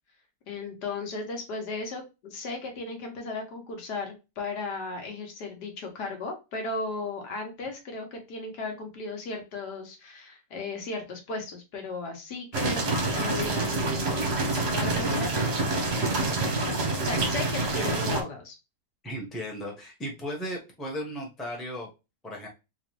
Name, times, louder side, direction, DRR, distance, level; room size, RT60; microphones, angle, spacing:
voice 1, 0.5-12.9 13.1-14.3 14.6-15.6 17.0-18.5, left 3 dB, 75° left, 3 dB, 1.6 m, -36 dB
sound 1, 12.5-18.2, right 2 dB, 45° right, 1.0 m, -27 dB
voice 2, 19.0-21.9 22.2-22.5, equal, ahead, -1 dB, 0.8 m, -35 dB
3.7 x 3.0 x 2.9 m, 0.26 s
omnidirectional pair, 1.8 m